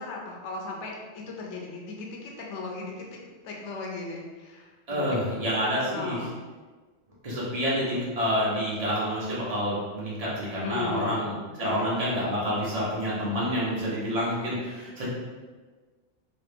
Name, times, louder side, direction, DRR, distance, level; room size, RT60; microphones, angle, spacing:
voice 1, 0.0-5.2 5.9-6.4 10.6-11.8, left 3 dB, 70° left, -1 dB, 0.9 m, -37 dB
voice 2, 4.9-6.2 7.2-15.1, equal, 35° right, -7 dB, 1.0 m, -28 dB
3.1 x 2.2 x 3.3 m, 1.4 s
omnidirectional pair, 1.3 m